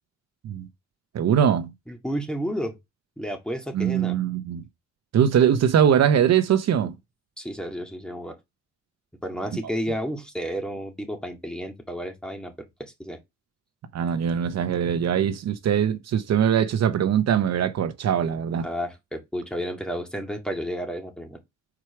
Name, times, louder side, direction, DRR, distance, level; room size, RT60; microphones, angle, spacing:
voice 1, 1.1-1.7 3.7-4.6 5.1-6.9 9.6-9.7 13.9-18.7, right 9 dB, 60° right, 0.9 m, -22 dB
voice 2, 1.9-2.8 3.2-4.2 7.4-8.4 9.2-12.5 12.8-13.2 18.6-21.4, equal, 5° left, 2.1 m, -31 dB
4.9 x 4.5 x 5.8 m
cardioid pair, 90°, 30 cm